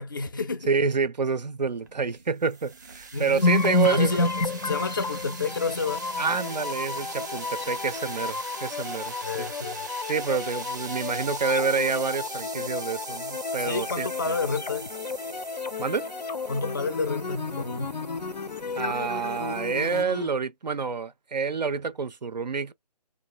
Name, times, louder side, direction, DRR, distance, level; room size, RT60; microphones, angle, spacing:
voice 1, 0.0-0.7 3.1-3.5 3.9-6.0 9.2-9.9 13.6-14.9 16.5-18.0, left 4 dB, 30° left, 0.4 m, -30 dB
voice 2, 0.7-4.3 6.2-9.5 10.1-14.4 15.8-16.1 18.8-22.7, right 5 dB, 90° right, 0.5 m, -28 dB
sound 1, 1.8-20.0, right 4 dB, 25° right, 0.4 m, -42 dB
sound 2, 3.4-20.3, left 3 dB, 85° left, 0.5 m, -31 dB
3.1 x 2.1 x 2.2 m
figure-of-eight pair, 150°, 21 cm